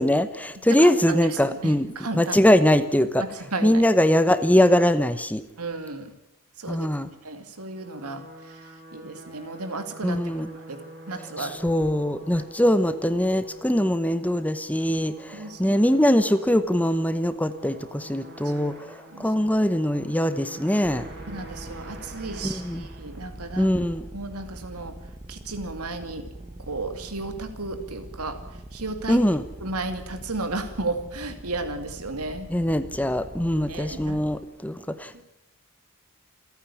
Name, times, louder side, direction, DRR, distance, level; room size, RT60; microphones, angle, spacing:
voice 1, 0.0-1.9 2.1-3.2 3.6-5.4 6.7-7.1 10.0-10.5 11.4-18.8 19.2-21.0 22.4-22.8 23.6-24.0 29.1-29.4 32.5-35.2, left 1 dB, 5° left, 12 dB, 1.0 m, -22 dB
voice 2, 0.7-2.4 3.2-3.8 5.6-6.1 6.6-6.9 7.2-10.8 11.1-11.6 12.4-12.5 15.3-15.8 19.1-19.3 21.3-23.7 24.1-24.9 25.3-26.3 26.7-28.4 28.7-29.2 29.6-32.5 33.7-34.2 35.1-35.2, right 3 dB, 90° right, 8 dB, 2.6 m, -34 dB
sound 1, 7.4-23.7, right 1 dB, 50° right, 6.3 m, -46 dB
sound 2, 20.8-34.4, right 1 dB, 25° right, 1.8 m, -42 dB
28.0 x 9.4 x 10.0 m, 0.90 s
head